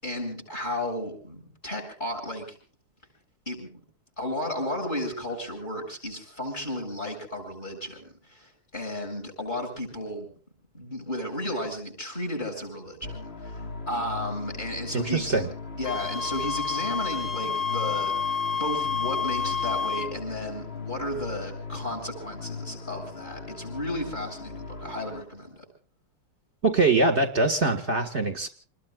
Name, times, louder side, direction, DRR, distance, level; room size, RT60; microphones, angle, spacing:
voice 1, 0.0-2.5 3.5-3.7 4.2-10.3 10.7-15.4 15.8-25.7, left 1 dB, 20° left, 3 dB, 7.9 m, -34 dB
sound 1, 13.0-25.2, left 4 dB, 35° left, 1.2 m, -39 dB
voice 2, 14.9-15.5 26.6-28.5, right 3 dB, 35° right, 7 dB, 1.9 m, -23 dB
Wind instrument woodwind instrument, 15.8-20.1, left 6 dB, 60° left, 0.6 m, -29 dB
29.0 x 20.5 x 2.4 m, 0.41 s
omnidirectional pair, 2.3 m